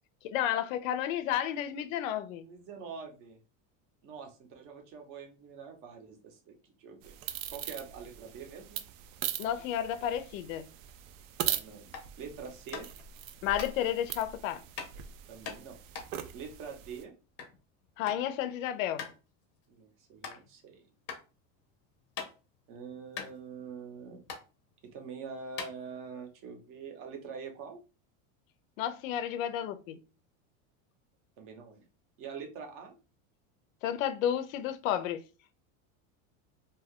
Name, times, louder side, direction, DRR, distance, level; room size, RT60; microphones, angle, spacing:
voice 1, 0.2-2.4 9.4-10.7 13.4-14.6 18.0-19.1 28.8-30.0 33.8-35.2, left 10 dB, 80° left, 0.6 m, -32 dB
voice 2, 2.5-3.4 4.0-7.1 7.5-8.8 11.4-11.9 12.2-12.9 15.3-15.8 16.3-17.1 19.7-20.9 22.7-24.2 24.8-27.8 31.4-31.8 32.2-33.0, right 5 dB, 35° right, 0.6 m, -45 dB
sound 1, 7.0-17.0, right 11 dB, 85° right, 0.5 m, -40 dB
sound 2, 11.9-12.2 12.7-13.0 13.6-13.7 14.8-14.9 15.5-17.6 17.8-18.3 18.5-18.6 19.0-19.2 19.6-19.7 20.2-20.4 21.1-21.2 21.6-22.6 22.9-23.0 23.1-24.0 24.3-24.4 25.1-25.2 25.5-26.3, left 6 dB, 30° left, 0.6 m, -41 dB
2.7 x 2.3 x 3.5 m
supercardioid pair, 170°, 39 cm